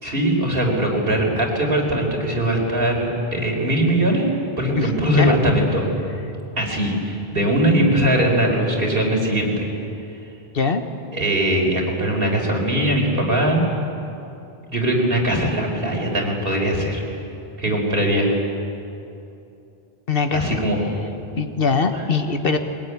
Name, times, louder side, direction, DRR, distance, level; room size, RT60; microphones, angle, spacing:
voice 1, 0.0-4.3 4.6-5.8 6.6-9.7 11.1-13.6 14.7-17.0 17.6-18.3 20.3-20.8 21.9-22.0, right 1 dB, 65° right, 0 dB, 4.6 m, -20 dB
voice 2, 4.8-5.4 10.5-10.8 20.1-20.6 21.4-22.6, left 4 dB, 65° left, 7 dB, 1.5 m, -22 dB
22.0 x 21.0 x 9.8 m, 2.8 s
omnidirectional pair, 1.0 m